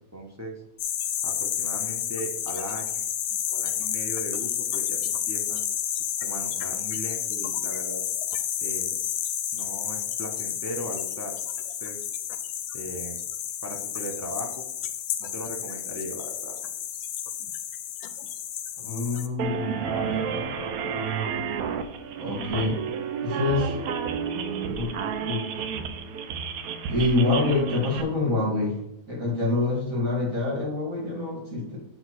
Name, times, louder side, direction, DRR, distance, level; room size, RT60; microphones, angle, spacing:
voice 1, 0.1-0.6 1.2-3.1 3.5-5.7 6.2-8.0 8.6-9.0 9.5-11.4 11.8-12.0 12.7-13.2 13.6-14.6 15.2-16.5, right 1 dB, 20° right, 1 dB, 0.4 m, -37 dB
sound 1, 0.8-19.3, left 10 dB, 80° left, 1.1 m, -31 dB
voice 2, 18.8-21.0 22.2-22.8 23.2-23.8 24.7-25.6 26.9-28.8 29.1-31.8, left 2 dB, 65° right, -4 dB, 2.8 m, -27 dB
sound 2, 19.4-28.0, right 6 dB, 80° right, 1.1 m, -31 dB
8.0 x 2.9 x 6.1 m, 0.80 s
omnidirectional pair, 1.5 m